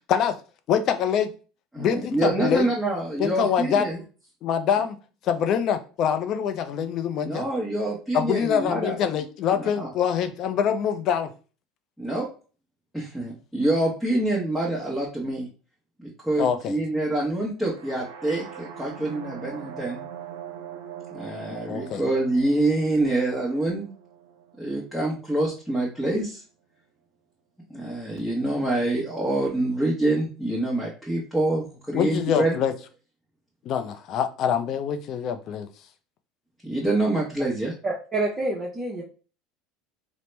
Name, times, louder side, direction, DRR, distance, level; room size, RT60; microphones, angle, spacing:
voice 1, 0.7-1.3 1.8-2.7 3.2-3.9 4.4-5.0 5.2-7.5 8.1-11.3 16.4-16.8 21.7-22.0 31.9-32.7 33.7-35.7, left 8 dB, 55° left, 9 dB, 0.4 m, -24 dB
voice 2, 1.7-4.0 7.2-9.0 9.5-9.9 12.0-12.3 12.9-15.5 16.0-20.0 21.1-23.9 24.6-26.4 27.7-32.6 36.6-37.7, right 2 dB, ahead, -4 dB, 0.9 m, -26 dB
sound 1, 17.7-25.6, right 8 dB, 80° right, 0.5 m, -42 dB
voice 3, 37.8-39.0, right 2 dB, 25° right, -3 dB, 0.7 m, -27 dB
2.9 x 2.0 x 3.2 m, 0.36 s
supercardioid pair, 95°, 0 cm